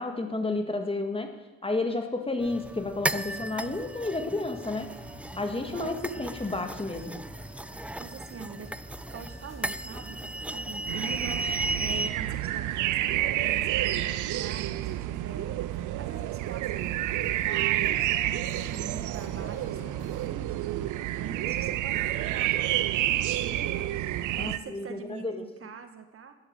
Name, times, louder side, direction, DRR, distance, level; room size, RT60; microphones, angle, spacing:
voice 1, 0.0-1.3 1.6-4.9 5.4-7.2 24.4-25.4, left 2 dB, 20° left, 6 dB, 2.0 m, -31 dB
sound 1, 2.4-12.1, right 1 dB, 5° right, 0.5 m, -35 dB
sound 2, 4.7-20.3, right 1 dB, 25° right, 5.9 m, -48 dB
voice 2, 5.7-6.3 8.0-8.7 9.1-15.6 16.0-20.8 21.2-26.3, right 5 dB, 45° right, 7 dB, 1.6 m, -43 dB
sound 3, 10.9-24.6, right 14 dB, 85° right, 0.7 m, -29 dB
12.0 x 11.0 x 7.7 m, 1.1 s
cardioid pair, 90°, 30 cm